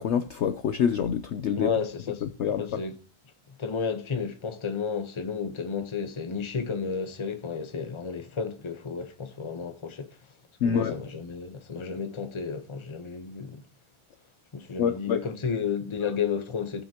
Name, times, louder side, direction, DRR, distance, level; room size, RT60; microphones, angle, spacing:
voice 1, 0.0-1.7 2.2-2.6 10.6-10.9 14.8-15.2, left 7 dB, 65° left, 0.7 m, -26 dB
voice 2, 1.6-3.0 3.5-10.2 10.6-13.6 14.5-16.8, left 6 dB, 25° left, 0.8 m, -32 dB
16.5 x 5.8 x 2.9 m
omnidirectional pair, 1.6 m